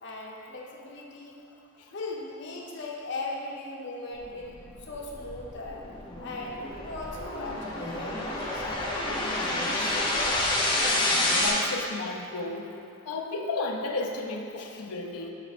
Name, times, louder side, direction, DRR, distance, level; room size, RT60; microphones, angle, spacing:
voice 1, 0.0-1.4 1.9-5.8 6.2-8.9 9.2-10.0, left 2 dB, 50° left, -2 dB, 0.8 m, -39 dB
sound 1, 4.5-11.5, left 1 dB, 20° left, 0.8 m, -29 dB
voice 2, 11.4-12.7 13.1-15.3, left 3 dB, 85° left, 1 dB, 0.6 m, -33 dB
5.8 x 5.3 x 4.1 m, 2.5 s
head